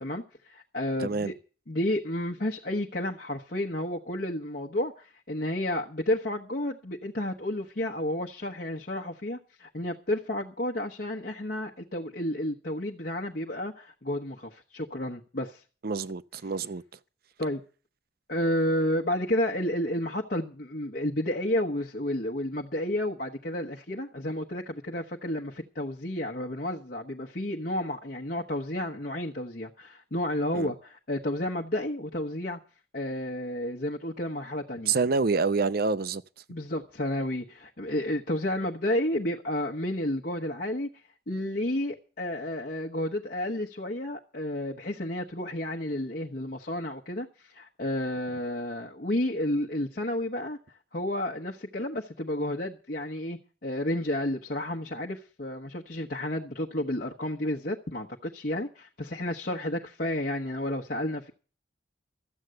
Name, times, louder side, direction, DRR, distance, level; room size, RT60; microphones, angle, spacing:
voice 1, 0.0-1.3 1.7-15.6 17.4-17.6 18.3-32.6 32.9-35.0 36.5-40.9 41.3-50.6 50.9-61.3, left 1 dB, 55° left, 1.2 m, -31 dB
voice 2, 1.0-1.3 15.8-16.8 30.5-30.7 34.9-36.2, right 4 dB, 55° right, 0.7 m, -27 dB
13.5 x 8.1 x 7.7 m
head